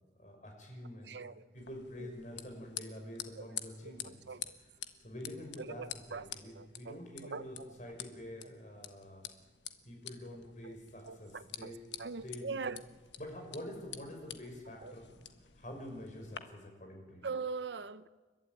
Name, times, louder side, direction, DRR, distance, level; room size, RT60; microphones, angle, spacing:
voice 1, 0.2-1.2 1.5-4.2 5.0-5.8 6.1-9.3 9.9-11.8 12.1-12.6 13.2-17.3, left 1 dB, 45° left, 5.8 m, -47 dB
voice 2, 1.1-1.5 2.0-2.1 3.4-3.5 3.8-4.6 5.6-6.3 6.5-7.0 7.3-7.7 10.6-10.7 11.0-11.7 12.0-12.9 14.8-14.9 17.2-18.1, right 4 dB, 80° right, 0.8 m, -42 dB
sound 1, 1.6-16.4, left 10 dB, 85° left, 1.4 m, -49 dB
30.0 x 12.5 x 9.3 m
head